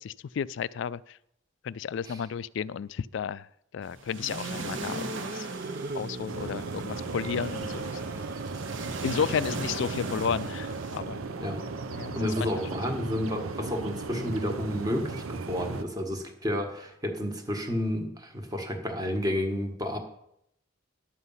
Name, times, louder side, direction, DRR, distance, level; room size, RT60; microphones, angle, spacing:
voice 1, 0.0-1.2 1.6-3.5 3.7-5.5 5.9-8.0 9.0-11.2 11.9-12.3, left 7 dB, 60° left, 19 dB, 0.3 m, -32 dB
sound 1, 3.8-11.0, right 2 dB, 65° right, 1.3 m, -39 dB
sound 2, 4.1-12.9, right 3 dB, 45° right, 0.5 m, -40 dB
sound 3, 6.3-15.8, right 3 dB, 80° right, 0.8 m, -37 dB
voice 2, 12.1-20.0, equal, 20° right, 4 dB, 1.3 m, -31 dB
11.0 x 8.1 x 5.6 m, 0.77 s
head